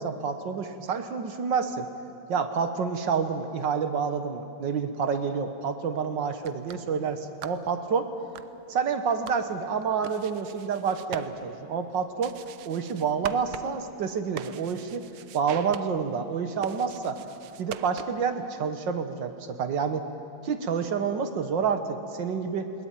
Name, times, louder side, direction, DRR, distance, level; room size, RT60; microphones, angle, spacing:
voice 1, 0.0-1.9 2.3-8.1 8.7-12.3 12.7-15.1 15.3-17.2 17.6-20.1 20.4-22.7, right 6 dB, 65° right, 8 dB, 1.9 m, -28 dB
sound 1, 6.3-18.4, right 10 dB, 80° right, 1.6 m, -44 dB
21.0 x 19.0 x 9.1 m, 2.9 s
omnidirectional pair, 2.3 m